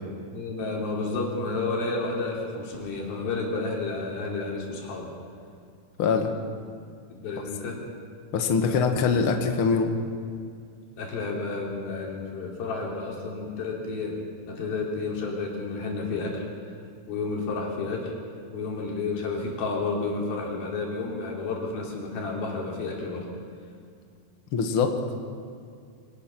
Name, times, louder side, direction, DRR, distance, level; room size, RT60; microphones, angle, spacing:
voice 1, 0.3-5.1 7.1-7.8 8.7-8.8 11.0-14.2 14.5-16.5 17.1-18.1 18.5-23.3, left 3 dB, 70° left, -2 dB, 5.2 m, -31 dB
voice 2, 6.0-6.3 8.3-9.9 24.5-25.0, left 5 dB, 55° left, 4 dB, 1.5 m, -23 dB
24.5 x 18.5 x 6.0 m, 2.3 s
omnidirectional pair, 4.4 m